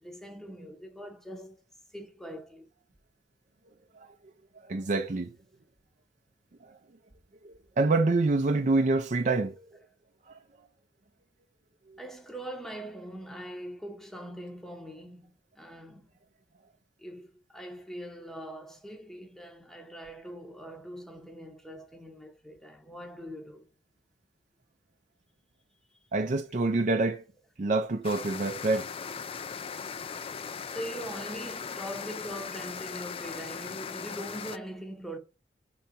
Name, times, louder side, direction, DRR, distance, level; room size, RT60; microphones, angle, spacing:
voice 1, 0.0-1.6 1.9-2.7 12.0-16.1 17.0-23.7 30.7-35.2, equal, ahead, 0.8 m, -42 dB
voice 2, 4.6-5.3 6.6-6.8 7.4-9.6 10.3-10.7 11.9-12.0 26.1-27.2 27.6-28.9, right 3 dB, 45° right, 0.5 m, -27 dB
sound 1, 28.0-34.6, left 6 dB, 30° left, 0.4 m, -39 dB
5.7 x 3.9 x 4.6 m
head